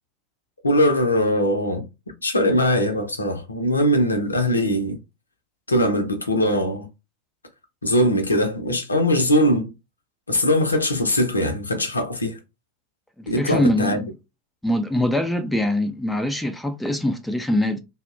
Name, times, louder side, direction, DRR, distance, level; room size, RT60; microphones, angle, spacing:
voice 1, 0.6-1.9 2.2-5.0 5.7-6.9 7.8-9.7 10.3-12.4 13.3-14.0, equal, 80° left, 0.6 m, -21 dB
voice 2, 13.2-14.1 14.6-17.8, left 1 dB, 5° left, 0.3 m, -23 dB
2.7 x 2.1 x 2.4 m
figure-of-eight pair, 90°, 0 cm